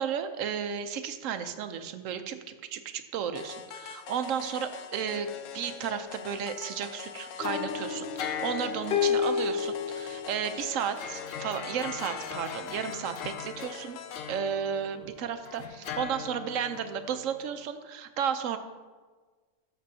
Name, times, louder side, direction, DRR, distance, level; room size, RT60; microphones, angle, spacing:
voice 1, 0.0-5.3 5.5-14.0 14.3-18.6, right 8 dB, 90° right, 9 dB, 1.0 m, -33 dB
sound 1, 3.3-14.4, left 8 dB, 90° left, 1.0 m, -43 dB
sound 2, 7.4-15.2 15.5-17.4, left 7 dB, 60° left, 0.7 m, -34 dB
12.5 x 6.9 x 2.7 m, 1.4 s
omnidirectional pair, 1.3 m